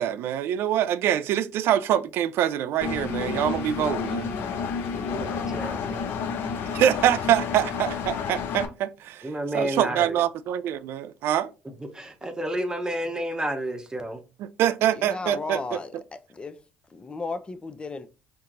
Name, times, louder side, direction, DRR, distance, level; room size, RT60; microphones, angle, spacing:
voice 1, 0.0-4.3 6.7-11.5 14.4-15.6, right 11 dB, 70° right, 0.3 m, -25 dB
Engine, 2.8-8.7, left 6 dB, 65° left, 0.6 m, -30 dB
voice 2, 5.1-6.0 9.2-10.2 11.9-14.2, right 1 dB, 15° right, 0.8 m, -31 dB
voice 3, 14.9-16.6 16.9-18.1, left 3 dB, 25° left, 0.5 m, -35 dB
4.5 x 2.8 x 2.5 m
supercardioid pair, 70°, 4 cm